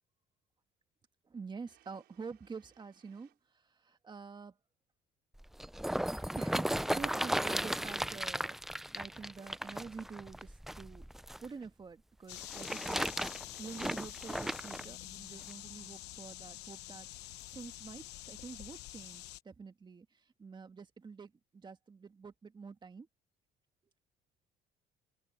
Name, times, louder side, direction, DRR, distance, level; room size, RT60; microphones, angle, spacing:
voice 1, 1.2-4.6 6.4-8.6 8.9-11.1 11.4-13.0 13.6-23.1, right 5 dB, 25° right, 1.7 m, -48 dB
sound 1, 1.7-3.4 5.9-7.2, right 16 dB, 80° right, 5.5 m, -65 dB
sound 2, 5.4-11.5 12.3-14.8 15.5-15.6, equal, ahead, 0.4 m, -36 dB
sound 3, 12.3-19.4, left 17 dB, 85° left, 0.9 m, -47 dB
cardioid pair, 110°, 17 cm